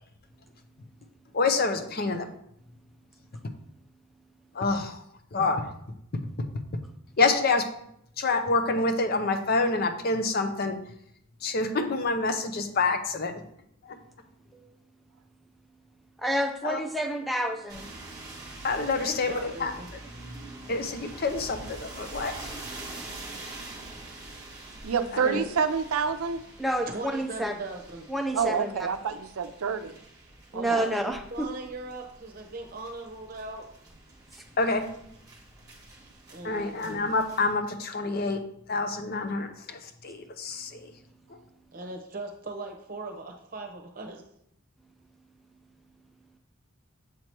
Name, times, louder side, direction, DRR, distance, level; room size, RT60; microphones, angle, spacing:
voice 1, 1.3-2.3 4.5-5.0 5.3-5.7 7.2-7.6 8.2-10.8 11.4-13.3 13.8-14.0 16.6-16.8 18.6-19.7 20.7-22.6 25.1-25.4 34.6-34.8 36.4-38.4 38.7-40.9, left 3 dB, 45° left, 7 dB, 0.6 m, -27 dB
voice 2, 16.2-17.9 26.6-27.5 28.1-28.9 30.5-31.5 34.3-34.4, right 1 dB, ahead, 4 dB, 0.5 m, -29 dB
sound 1, 17.7-37.5, right 2 dB, 15° right, 1.3 m, -45 dB
voice 3, 18.9-19.9 26.9-28.1 30.5-33.6 36.3-37.0 41.7-44.2, right 2 dB, 40° right, 3 dB, 0.9 m, -39 dB
voice 4, 24.8-26.4 28.3-29.9 30.5-30.8, right 6 dB, 90° right, 9 dB, 0.5 m, -28 dB
7.5 x 2.9 x 4.5 m, 0.74 s
head